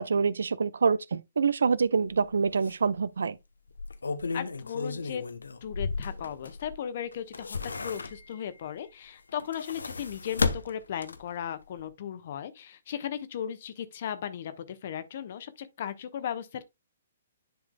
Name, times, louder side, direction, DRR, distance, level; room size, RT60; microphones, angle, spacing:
voice 1, 0.0-3.4, right 5 dB, 60° right, 0.5 m, -26 dB
sound 1, 2.1-2.2 2.6-2.7 3.7-6.7 7.1-8.5 9.3-11.4 11.8-11.9, left 4 dB, 70° left, 0.9 m, -34 dB
voice 2, 4.3-5.2 5.6-16.6, left 9 dB, 45° left, 1.1 m, -36 dB
10.5 x 5.0 x 2.3 m
figure-of-eight pair, 120°, 0 cm